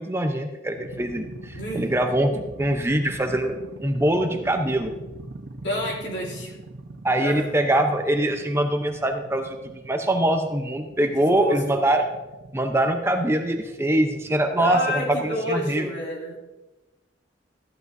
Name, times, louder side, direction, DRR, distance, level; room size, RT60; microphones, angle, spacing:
voice 1, 0.0-4.9 7.0-12.0 12.5-15.9, right 1 dB, 15° right, 5 dB, 0.7 m, -23 dB
Space monster Drone, 0.8-15.6, right 2 dB, 85° right, 1.0 m, -41 dB
voice 2, 1.5-1.9 5.6-6.6 7.2-7.5 11.0-11.6 14.6-16.4, equal, 75° left, -4 dB, 2.9 m, -29 dB
14.5 x 11.0 x 2.7 m, 1.1 s
head